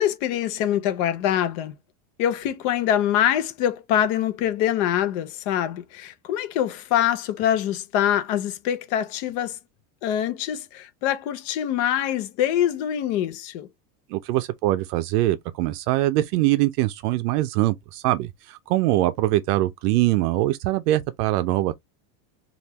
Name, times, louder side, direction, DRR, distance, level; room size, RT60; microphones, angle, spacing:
voice 1, 0.0-1.7 2.2-9.6 10.0-13.7, left 10 dB, 45° left, 0.6 m, -24 dB
voice 2, 14.1-21.7, right 16 dB, 75° right, 0.5 m, -23 dB
3.4 x 2.5 x 2.8 m
supercardioid pair, 170°, 47 cm